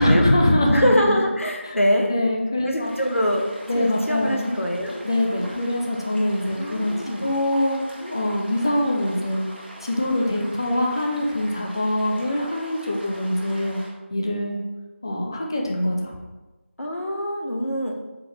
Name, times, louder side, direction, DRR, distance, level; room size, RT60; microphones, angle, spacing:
voice 1, 0.0-1.2 1.6-1.7 2.1-2.9 3.7-4.5 5.0-6.9 7.2-9.4 9.8-13.8 14.1-14.6 15.0-16.1, left 1 dB, 20° left, 0 dB, 0.3 m, -23 dB
voice 2, 0.7-2.1 2.7-3.5 3.7-5.0 6.5-7.3 16.8-17.9, equal, 85° left, 1 dB, 0.8 m, -24 dB
sound 1, 2.8-13.9, right 1 dB, 50° right, 1.0 m, -42 dB
4.0 x 3.1 x 2.9 m, 1.2 s
figure-of-eight pair, 165°, 7 cm